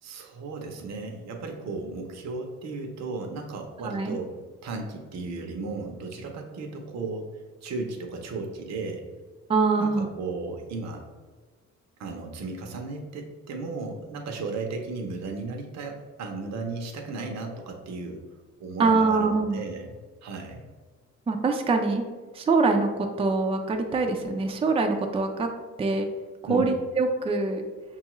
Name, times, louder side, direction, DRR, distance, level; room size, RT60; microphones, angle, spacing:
voice 1, 0.0-4.3 4.6-9.1 9.8-11.1 12.0-18.2 18.6-19.9 20.2-20.6 26.5-26.7, right 3 dB, 60° right, 2 dB, 0.7 m, -35 dB
voice 2, 3.8-4.2 9.5-10.1 18.8-19.6 21.3-22.0 22.3-25.5 25.8-26.1 26.5-27.7, right 3 dB, 20° right, 4 dB, 0.4 m, -24 dB
5.3 x 2.3 x 3.0 m, 1.4 s
cardioid pair, 90°, 30 cm